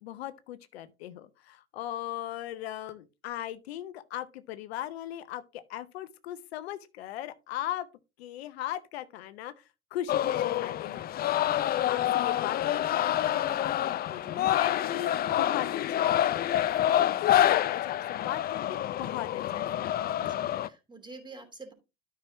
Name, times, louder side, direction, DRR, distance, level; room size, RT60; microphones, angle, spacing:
voice 1, 0.0-7.9 8.2-9.6 9.9-20.0, left 13 dB, 65° left, 0.8 m, -38 dB
sound 1, 10.1-20.7, left 12 dB, 30° left, 0.5 m, -27 dB
voice 2, 20.2-21.7, right 3 dB, 15° right, 3.1 m, -47 dB
12.5 x 6.0 x 2.9 m
figure-of-eight pair, 70°, 33 cm